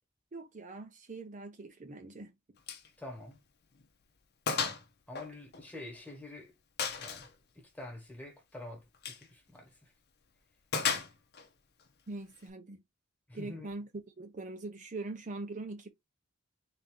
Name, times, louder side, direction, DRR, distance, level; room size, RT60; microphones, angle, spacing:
voice 1, 0.3-2.3 12.1-12.8 13.3-15.9, right 2 dB, 40° right, 0.6 m, -42 dB
Gunshot gunfire, 2.7-2.9 3.2-3.3 3.8-3.9 4.5-4.8 5.2-6.1 6.8-7.3 8.9-9.3 10.7-11.5, left 6 dB, 55° left, 0.8 m, -34 dB
voice 2, 3.0-3.4 5.1-6.5 7.0-7.3 7.5-8.8 9.1-9.7 13.3-13.7, left 2 dB, 10° left, 1.4 m, -46 dB
3.7 x 2.8 x 3.6 m
head